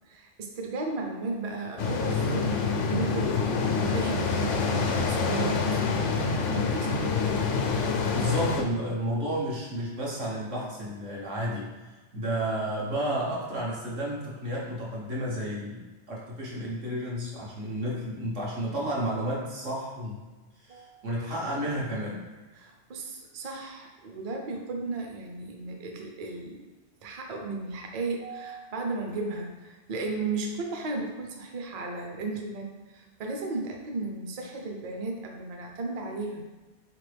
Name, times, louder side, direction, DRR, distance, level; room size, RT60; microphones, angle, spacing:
voice 1, 0.1-7.1 20.7-21.0 22.6-26.6 27.0-36.4, right 3 dB, 50° right, 2 dB, 0.5 m, -35 dB
sound 1, 1.8-8.6, left 4 dB, 85° left, 0.9 m, -26 dB
voice 2, 8.1-20.2 20.6-22.3, equal, 85° right, -5 dB, 1.4 m, -32 dB
3.8 x 3.3 x 3.3 m, 1.2 s
omnidirectional pair, 1.2 m